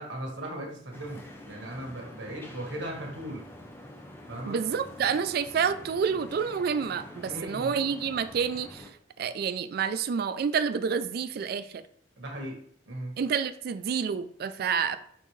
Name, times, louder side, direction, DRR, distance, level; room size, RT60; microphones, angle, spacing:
voice 1, 0.0-3.4 4.3-4.6 7.2-7.7 9.2-9.3 12.2-12.6 12.9-13.2, right 1 dB, 85° right, 0 dB, 1.4 m, -38 dB
sound 1, 0.9-8.9, left 1 dB, 15° left, 0.6 m, -47 dB
voice 2, 4.4-8.9 9.2-11.8 13.2-15.0, right 6 dB, 55° right, 12 dB, 0.3 m, -29 dB
4.3 x 3.8 x 3.1 m, 0.64 s
head